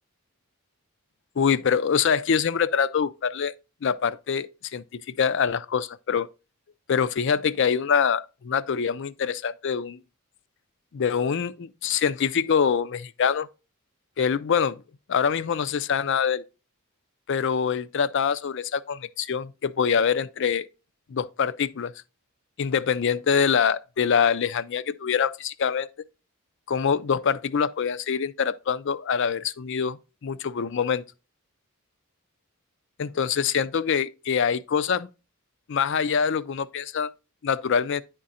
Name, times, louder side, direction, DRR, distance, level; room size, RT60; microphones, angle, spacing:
voice 1, 1.4-3.5 3.8-6.3 6.9-10.0 10.9-13.5 14.2-14.8 15.1-16.4 17.3-20.7 21.1-21.9 22.6-25.9 26.7-31.0 33.0-35.1 35.7-37.1 37.4-38.0, left 6 dB, 55° left, 0.4 m, -25 dB
10.0 x 3.8 x 4.1 m
head